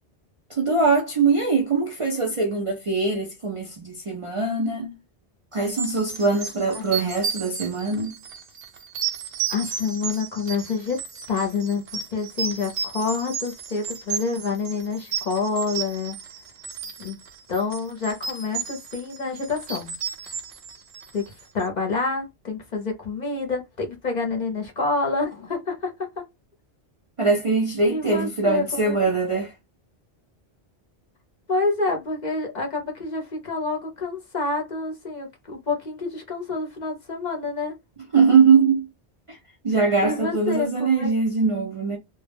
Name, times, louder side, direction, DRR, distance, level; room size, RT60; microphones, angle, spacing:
voice 1, 0.5-5.0 5.5-8.2 27.2-29.5 38.1-38.9 39.3-39.4 39.6-42.0, right 4 dB, 45° right, 0.4 m, -22 dB
sound 1, 5.6-21.4, right 7 dB, 85° right, 0.9 m, -33 dB
voice 2, 9.5-11.0 11.3-16.2 17.0-17.2 17.5-19.9 21.1-26.3 27.9-29.0 31.5-37.7 40.0-41.1, left 4 dB, 50° left, 0.7 m, -28 dB
2.2 x 2.1 x 3.2 m
omnidirectional pair, 1.1 m